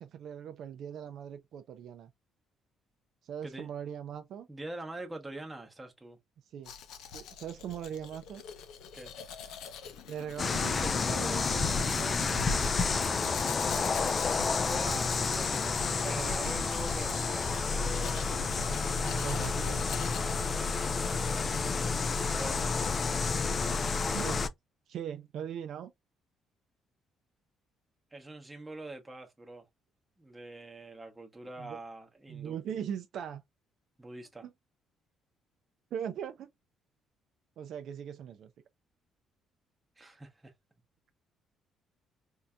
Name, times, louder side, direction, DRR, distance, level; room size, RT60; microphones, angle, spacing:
voice 1, 0.0-2.1 3.2-4.5 6.5-6.7 7.1-8.4 10.1-12.7 15.8-16.5 19.0-19.8 24.1-24.5 24.9-25.9 31.6-31.8 32.3-33.4 34.4-34.5 35.9-36.5 37.6-38.5, right 9 dB, 55° right, 0.4 m, -40 dB
voice 2, 4.5-6.2 8.9-9.1 14.5-18.0 22.2-22.7 28.1-29.6 30.2-32.6 34.0-34.5 40.0-40.5, right 2 dB, 10° right, 0.8 m, -44 dB
Domestic sounds home sounds, 6.6-20.2, left 7 dB, 75° left, 0.7 m, -46 dB
sound 1, 10.4-24.5, left 4 dB, 25° left, 0.3 m, -30 dB
4.5 x 2.7 x 2.2 m
cardioid pair, 170°, 0 cm